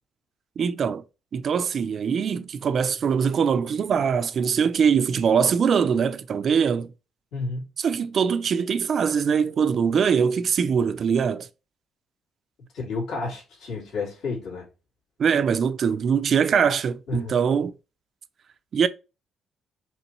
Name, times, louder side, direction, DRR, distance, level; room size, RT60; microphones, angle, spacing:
voice 1, 0.6-1.0 1.3-6.9 7.8-11.5 15.2-17.7 18.7-18.9, right 6 dB, 40° right, 0.4 m, -22 dB
voice 2, 7.3-7.7 12.7-14.6 17.1-17.4, left 3 dB, 65° left, 2.5 m, -31 dB
5.3 x 3.1 x 3.0 m
cardioid pair, 160°, 0 cm